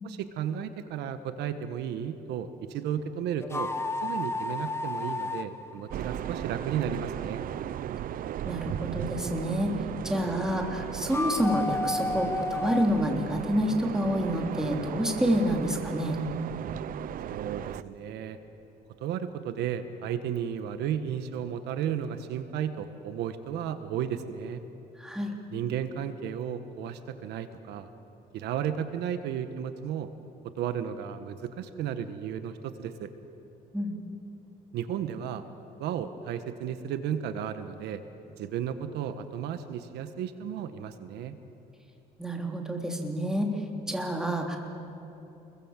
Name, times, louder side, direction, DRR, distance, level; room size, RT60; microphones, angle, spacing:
voice 1, 0.0-3.7 4.0-7.4 17.3-18.4 19.0-24.6 25.5-27.9 28.3-30.1 30.6-33.1 34.7-35.4 35.8-38.0 38.4-41.4, right 9 dB, 80° right, 9 dB, 1.4 m, -33 dB
sound 1, 3.4-6.7 11.0-13.2, left 2 dB, 15° left, 1.2 m, -32 dB
sound 2, 5.9-17.8, right 11 dB, 55° right, 0.7 m, -36 dB
voice 2, 8.4-9.7 10.0-16.2 25.0-25.3 33.7-34.0 42.2-43.5 43.9-44.6, equal, 5° right, 1 dB, 3.5 m, -28 dB
29.5 x 22.5 x 7.5 m, 3.0 s
cardioid pair, 110°, 17 cm